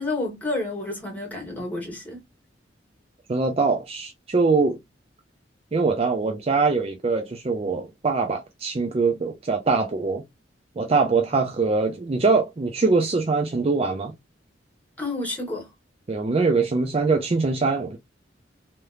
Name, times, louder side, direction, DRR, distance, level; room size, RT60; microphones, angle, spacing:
voice 1, 0.0-2.2 15.0-15.7, left 2 dB, 10° left, 1.5 m, -30 dB
voice 2, 3.3-4.8 5.7-10.2 10.8-14.1 16.1-18.0, right 4 dB, 35° right, 0.4 m, -23 dB
3.3 x 2.9 x 2.3 m
head